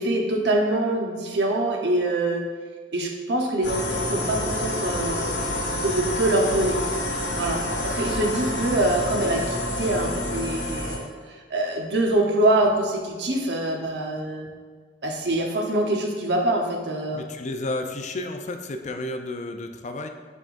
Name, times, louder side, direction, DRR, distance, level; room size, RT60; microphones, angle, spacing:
voice 1, 0.0-2.5 2.9-5.3 5.7-6.8 7.3-11.1 11.5-14.5 15.0-17.2, right 1 dB, 75° right, 1 dB, 0.9 m, -24 dB
sound 1, 3.6-11.0, left 1 dB, 80° left, 1.0 m, -28 dB
voice 2, 6.2-6.6 7.6-7.8 8.3-8.5 17.1-20.1, left 2 dB, 40° left, 6 dB, 0.5 m, -33 dB
10.5 x 3.6 x 2.5 m, 1.5 s
head